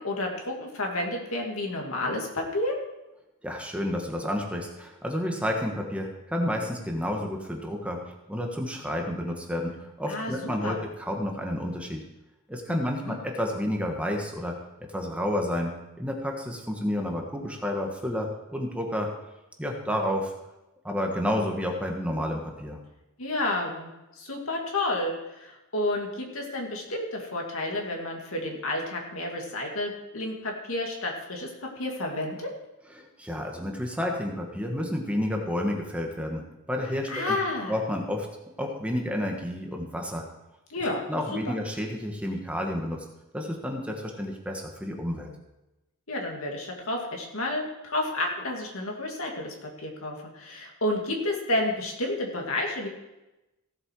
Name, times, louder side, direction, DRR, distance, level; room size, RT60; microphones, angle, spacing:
voice 1, 0.0-2.8 10.1-10.8 12.7-13.2 23.2-23.9 24.2-32.5 37.1-37.7 40.7-41.0 41.5-41.6 46.1-52.9, left 1 dB, 70° left, 0 dB, 2.5 m, -31 dB
voice 2, 3.4-12.0 12.5-14.6 14.9-15.7 16.0-19.1 19.6-20.3 20.8-22.8 32.9-37.4 37.7-38.3 38.6-40.3 41.1-43.0 43.3-45.3, left 1 dB, 5° right, 1 dB, 1.4 m, -30 dB
16.0 x 7.6 x 4.8 m, 0.97 s
head